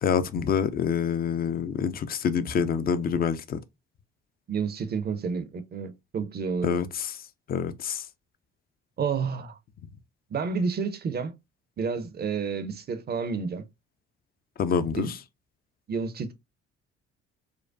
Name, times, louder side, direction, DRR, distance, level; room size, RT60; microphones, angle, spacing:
voice 1, 0.0-3.6 6.6-7.1 7.5-8.0 14.6-15.1, left 7 dB, 25° left, 0.4 m, -26 dB
voice 2, 4.5-6.9 9.0-9.5 10.3-11.3 11.8-13.6 15.0-15.1 15.9-16.3, right 5 dB, 25° right, 0.5 m, -30 dB
4.5 x 2.1 x 2.4 m
figure-of-eight pair, 50°, 36 cm